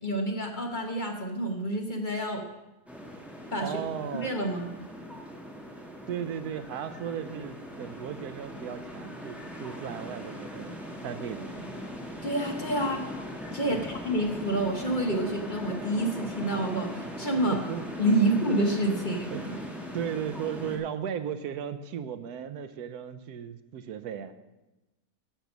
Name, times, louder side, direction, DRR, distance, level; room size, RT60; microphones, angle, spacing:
voice 1, 0.0-2.4 3.5-3.8 4.1-4.7 12.2-13.1 13.5-17.6 18.0-19.4, right 1 dB, 35° left, 2 dB, 1.1 m, -28 dB
sound 1, 2.9-20.8, equal, ahead, 1.5 m, -40 dB
voice 2, 3.6-4.3 6.1-11.7 13.7-13.9 17.5-17.8 19.3-24.3, right 8 dB, 80° right, 10 dB, 1.2 m, -36 dB
10.5 x 6.8 x 6.0 m, 1.0 s
omnidirectional pair, 1.6 m